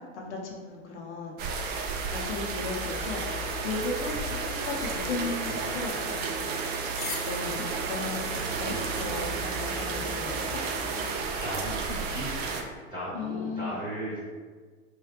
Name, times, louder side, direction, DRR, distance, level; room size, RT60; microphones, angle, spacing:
voice 1, 0.0-3.3 3.6-4.4 4.6-6.6 7.2-10.6 13.1-13.8, left 3 dB, 75° left, -1 dB, 1.0 m, -36 dB
sound 1, 1.4-12.6, right 4 dB, 30° right, 0.4 m, -32 dB
sound 2, 4.1-10.6, left 4 dB, 30° left, 0.8 m, -46 dB
voice 2, 8.4-9.1 9.7-10.1 11.4-12.7 12.9-14.2, equal, 15° right, -8 dB, 0.9 m, -37 dB
3.3 x 2.7 x 3.3 m, 1.5 s
hypercardioid pair, 105°, 35 cm